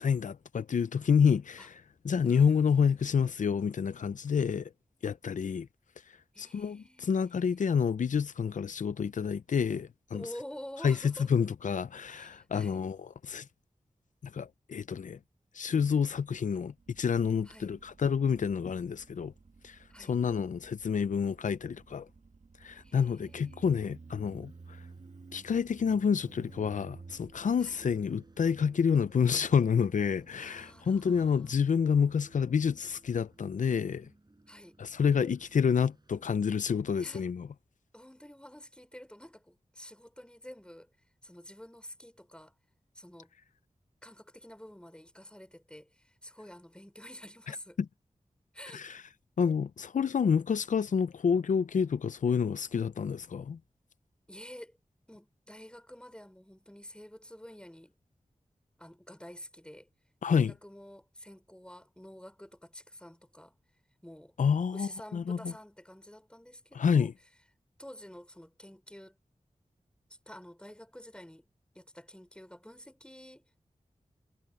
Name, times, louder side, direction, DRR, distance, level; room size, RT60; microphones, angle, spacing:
voice 1, 0.0-4.7 5.0-5.7 6.4-10.2 10.8-13.5 14.3-15.2 15.5-19.3 19.6-22.1 22.6-24.8 25.3-34.1 34.8-37.5 48.7-49.0 49.4-53.6 60.2-60.5 64.4-65.4 66.7-67.1, left 6 dB, 85° left, 0.5 m, -28 dB
voice 2, 2.2-3.3 6.3-7.6 10.1-11.3 12.1-12.8 17.5-17.7 19.9-20.2 22.8-23.7 27.6-27.8 30.4-31.5 34.5-34.8 37.0-37.2 37.9-40.9 41.2-42.5 42.9-43.3 44.0-47.8 48.5-48.9 54.3-54.7 55.1-57.9 58.8-59.9 60.3-63.6 64.0-64.3 64.7-67.1 67.8-69.2 70.3-71.4 71.7-73.6, equal, 5° left, 3.9 m, -49 dB
Motorcycle, 16.8-34.0, right 4 dB, 65° right, 1.7 m, -55 dB
sound 1, 24.4-36.4, right 2 dB, 35° right, 6.1 m, -62 dB
cardioid pair, 50°, 13 cm